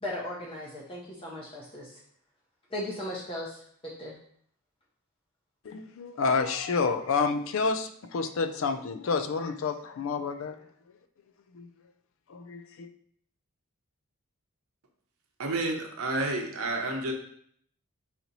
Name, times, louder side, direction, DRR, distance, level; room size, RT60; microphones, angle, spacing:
voice 1, 0.0-2.0 2.7-4.2, left 1 dB, 25° left, -4 dB, 0.7 m, -37 dB
voice 2, 5.6-10.6 11.5-11.7 12.3-12.9, left 4 dB, 60° left, 9 dB, 0.4 m, -29 dB
voice 3, 15.4-17.1, right 2 dB, 75° right, 2 dB, 0.8 m, -30 dB
4.1 x 2.9 x 3.9 m, 0.64 s
head